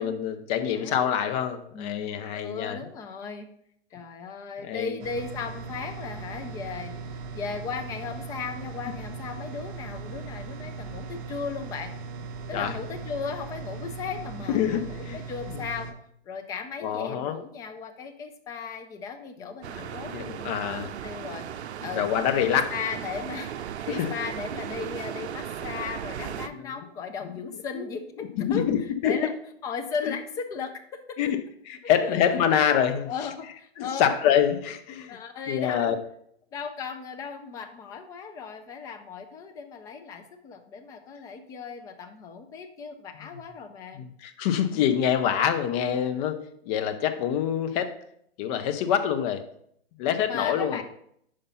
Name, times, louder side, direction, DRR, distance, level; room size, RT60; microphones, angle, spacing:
voice 1, 0.0-2.8 4.6-4.9 12.5-12.7 14.5-15.2 15.5-15.6 16.8-17.4 19.8-20.9 22.0-22.7 23.9-24.1 26.5-26.8 27.7-27.8 28.3-29.2 30.0-30.1 31.2-33.1 33.8-35.2 35.5-36.0 43.2-43.3 43.9-46.4 46.7-48.0 48.4-49.4 50.0-50.8, left 9 dB, 35° left, 9 dB, 0.7 m, -26 dB
voice 2, 0.7-1.1 1.7-3.5 3.9-7.0 7.3-11.9 12.5-15.9 16.3-21.5 21.8-22.1 22.4-28.7 29.0-29.3 29.6-31.3 32.3-32.4 33.1-34.0 35.1-35.9 36.5-44.0 50.3-50.8, left 5 dB, 10° left, 7 dB, 0.3 m, -36 dB
sound 1, 5.0-15.9, right 4 dB, 40° right, 0.9 m, -38 dB
sound 2, 19.6-26.5, right 9 dB, 85° right, 0.5 m, -36 dB
5.4 x 5.1 x 5.6 m, 0.70 s
hypercardioid pair, 130°, 32 cm